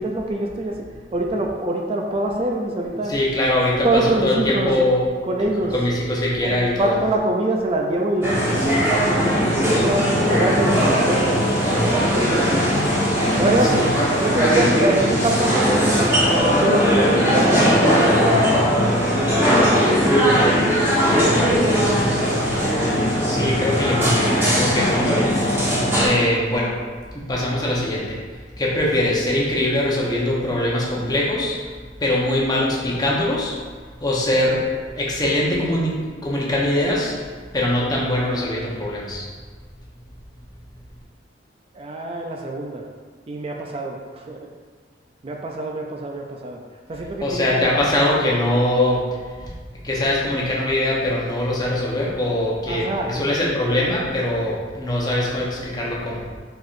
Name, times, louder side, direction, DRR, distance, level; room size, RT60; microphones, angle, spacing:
voice 1, 0.0-3.1 3.8-4.7 5.3-5.7 6.4-8.7 9.0-12.6 13.4-13.9 14.2-16.1 16.6-18.8 19.1-20.9 21.2-22.1 41.7-42.8 43.3-44.5 45.2-46.6 46.9-47.7 52.7-53.5, right 2 dB, 35° right, 0 dB, 0.4 m, -25 dB
voice 2, 3.1-5.0 5.7-7.0 13.8-13.9 23.3-26.8 27.1-31.6 32.0-33.6 34.0-34.7 34.9-37.2 37.5-39.3 47.2-49.5 49.8-56.3, left 1 dB, 25° left, -4 dB, 0.9 m, -22 dB
sound 1, 8.2-26.1, equal, 15° right, 1.3 m, -19 dB
4.7 x 4.3 x 2.5 m, 1.5 s
head